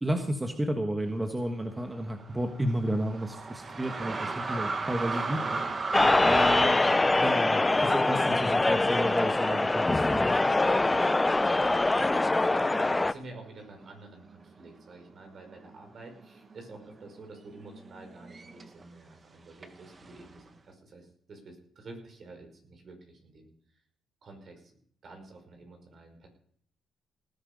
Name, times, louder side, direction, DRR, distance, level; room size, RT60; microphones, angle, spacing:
voice 1, 0.0-5.6 6.2-6.8 7.2-10.3, right 1 dB, 15° right, 5 dB, 1.6 m, -32 dB
sound 1, 1.8-9.4 9.8-9.9 10.6-11.1 11.8-12.0 12.2-13.9 14.3-14.8 15.1-18.8 19.6-20.5, right 3 dB, 35° right, 1.7 m, -37 dB
voice 2, 4.9-5.7 10.8-12.6 13.1-23.5 24.2-24.7 25.0-26.3, right 2 dB, 50° right, 4 dB, 5.3 m, -49 dB
sound 2, 5.9-13.1, left 2 dB, 15° left, 0.6 m, -24 dB
18.5 x 10.0 x 5.3 m, 0.63 s
cardioid pair, 90°, 0 cm